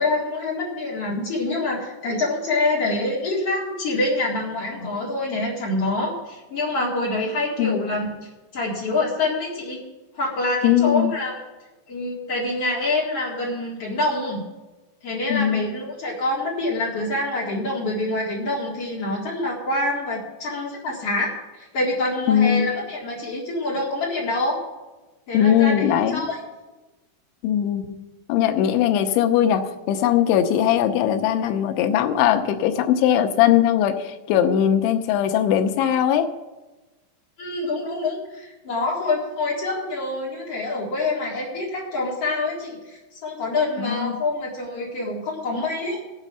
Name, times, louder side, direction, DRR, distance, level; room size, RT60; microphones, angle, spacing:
voice 1, 0.0-9.8 10.1-11.3 11.9-14.4 15.0-24.6 25.3-26.4 37.4-46.0, left 2 dB, 40° left, -3 dB, 2.4 m, -26 dB
voice 2, 10.6-11.1 15.3-15.6 22.3-22.7 25.3-26.2 27.4-28.0 28.3-36.3 43.8-44.1, left 10 dB, 85° left, 7 dB, 3.1 m, -20 dB
16.0 x 8.2 x 5.6 m, 1.2 s
omnidirectional pair, 5.3 m